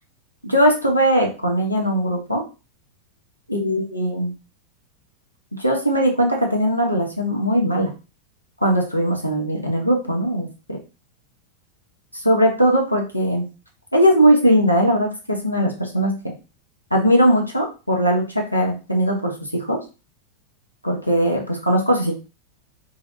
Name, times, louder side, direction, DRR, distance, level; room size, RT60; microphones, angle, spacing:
voice 1, 0.4-2.4 3.5-4.3 5.6-7.9 8.6-10.5 12.1-13.4 13.9-16.4 16.9-19.8 20.8-22.2, equal, 90° left, 0 dB, 0.6 m, -19 dB
2.7 x 2.0 x 2.6 m, 0.32 s
figure-of-eight pair, 90°, 0 cm